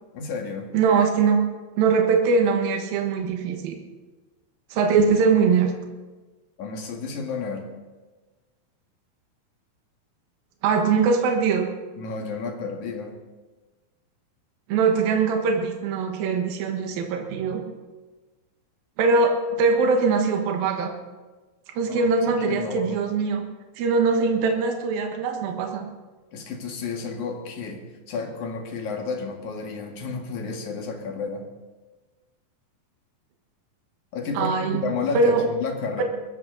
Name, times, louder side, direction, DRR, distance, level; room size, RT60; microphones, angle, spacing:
voice 1, 0.1-0.7 6.6-7.6 12.0-13.1 21.9-23.0 26.3-31.4 34.1-36.0, left 4 dB, 60° left, 2 dB, 3.1 m, -31 dB
voice 2, 0.7-1.4 1.8-3.8 4.7-5.7 10.6-11.7 14.7-17.6 19.0-20.9 21.7-23.4 23.8-25.9 34.4-35.5 36.0-36.1, right 4 dB, 75° right, 3 dB, 3.2 m, -22 dB
21.5 x 14.0 x 4.0 m, 1.3 s
omnidirectional pair, 4.2 m